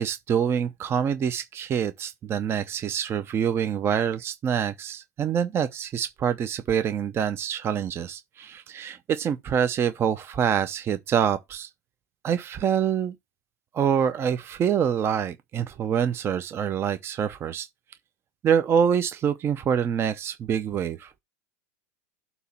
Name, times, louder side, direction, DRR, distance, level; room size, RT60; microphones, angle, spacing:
voice 1, 0.0-11.7 12.2-13.1 13.7-17.7 18.4-21.1, right 8 dB, 30° right, 0.6 m, -26 dB
8.0 x 2.9 x 5.8 m
hypercardioid pair, 110°, 9 cm